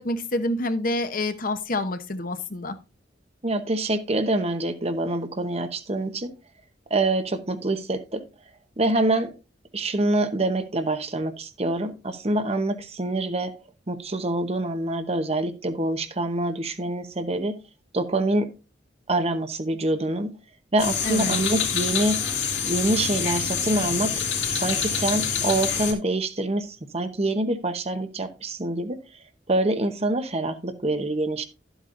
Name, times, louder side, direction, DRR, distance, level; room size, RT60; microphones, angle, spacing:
voice 1, 0.0-2.8 21.0-21.4, left 2 dB, 50° left, 9 dB, 1.0 m, -27 dB
voice 2, 3.4-6.3 6.9-8.2 8.8-9.3 9.7-13.5 13.9-17.5 17.9-18.5 19.1-20.3 20.7-22.2 22.6-24.1 24.5-29.0 29.5-31.5, right 2 dB, 35° right, 8 dB, 0.9 m, -25 dB
Frogs and Crickets Wapa di Ume, 20.8-25.9, left 7 dB, 80° left, 2.5 m, -26 dB
12.0 x 8.1 x 2.6 m, 0.29 s
head